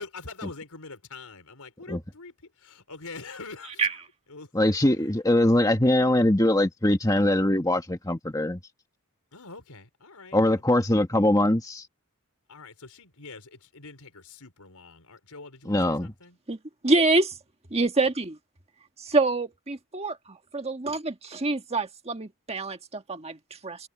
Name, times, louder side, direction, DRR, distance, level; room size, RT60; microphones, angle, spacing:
voice 1, 0.0-4.0 4.3-4.5 5.0-5.1 9.3-10.6 12.5-16.4, left 3 dB, 90° left, 4.6 m, -44 dB
voice 2, 4.5-8.6 10.3-11.8 15.7-16.1, left 1 dB, 15° left, 1.5 m, -22 dB
voice 3, 16.8-17.4 17.7-18.4 19.0-23.9, right 3 dB, 30° right, 1.6 m, -26 dB
head